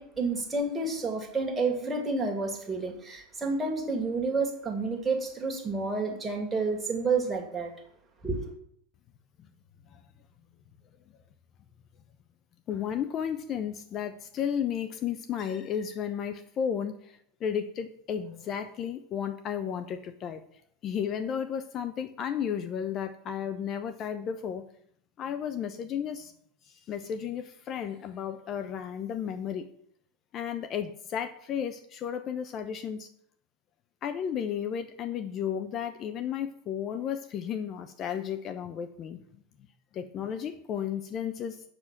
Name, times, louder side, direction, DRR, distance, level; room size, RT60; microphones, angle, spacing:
voice 1, 0.0-7.7 8.2-8.5, right 3 dB, 15° right, 2.2 m, -30 dB
voice 2, 12.7-20.4 20.8-24.7 25.2-26.3 26.7-29.7 30.3-33.1 34.0-39.2 39.9-41.6, left 8 dB, 40° left, 0.7 m, -33 dB
7.6 x 6.2 x 5.8 m
hypercardioid pair, 85°, 0 cm